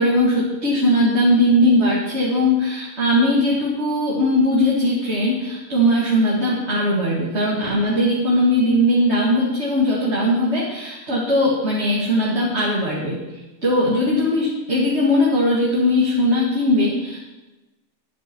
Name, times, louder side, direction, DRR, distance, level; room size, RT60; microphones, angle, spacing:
voice 1, 0.0-13.2 13.6-17.2, left 1 dB, 40° right, -6 dB, 2.6 m, -19 dB
12.5 x 11.0 x 4.6 m, 1.1 s
omnidirectional pair, 1.7 m